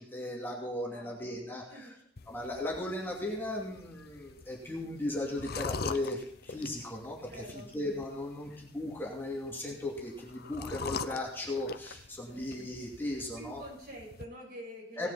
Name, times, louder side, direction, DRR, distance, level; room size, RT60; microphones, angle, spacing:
voice 1, 0.0-1.9 2.3-13.6 15.0-15.1, left 1 dB, 10° left, -3 dB, 2.6 m, -37 dB
voice 2, 0.9-1.4 1.7-1.9 7.3-7.7 12.2-12.5 13.4-15.1, right 1 dB, 60° right, -2 dB, 7.0 m, -47 dB
sound 1, 2.2-14.3, left 4 dB, 60° left, 0.7 m, -44 dB
17.5 x 9.7 x 4.2 m, 0.66 s
head